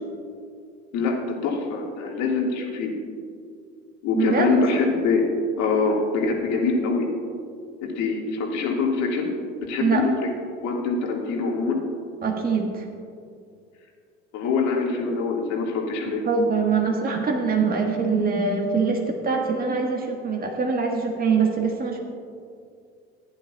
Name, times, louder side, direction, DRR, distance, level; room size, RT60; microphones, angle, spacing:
voice 1, 1.4-2.9 4.0-5.2 5.6-7.1 7.8-9.3 9.6-10.1 10.6-11.8 14.3-16.2, left 4 dB, 55° left, 0 dB, 1.9 m, -24 dB
voice 2, 4.1-4.5 9.8-10.0 12.2-12.9 16.3-22.0, right 5 dB, 25° right, 1 dB, 1.4 m, -23 dB
15.0 x 10.5 x 2.3 m, 2.4 s
hypercardioid pair, 70°, 32 cm